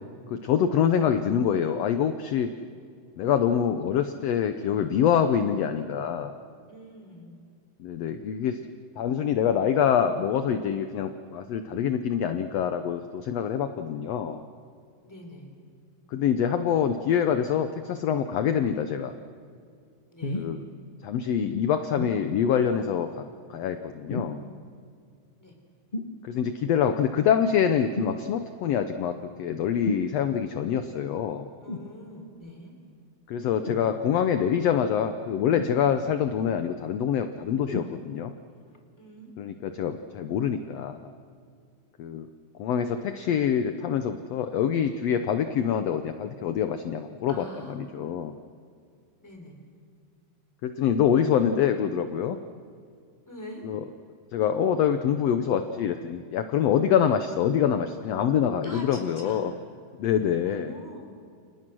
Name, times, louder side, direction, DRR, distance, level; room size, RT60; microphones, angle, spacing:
voice 1, 0.3-2.5 3.2-6.3 7.8-8.6 9.0-14.4 16.1-19.1 20.4-20.6 21.0-23.2 23.5-24.4 26.2-31.5 33.3-38.3 39.4-41.1 42.0-42.3 42.6-48.3 50.6-52.4 53.6-53.8 54.3-59.5 60.0-60.7, left 8 dB, 70° left, 8 dB, 1.7 m, -25 dB
voice 2, 6.7-7.4 15.0-15.5 20.1-20.5 25.4-25.6 31.6-32.7 39.0-39.3 47.3-47.8 49.2-49.6 53.3-53.6 58.6-59.4 60.4-61.2, equal, 5° left, 2 dB, 4.2 m, -44 dB
sound 1, 20.2-20.5 22.0-22.2 24.1-24.5 25.9-26.2 27.9-28.2 29.8-30.1 31.7-31.9 33.6-33.9 35.6-36.1 37.7-37.9 38.7-38.8, left 3 dB, 40° left, 0.6 m, -32 dB
29.5 x 27.5 x 6.3 m, 2.3 s
omnidirectional pair, 3.6 m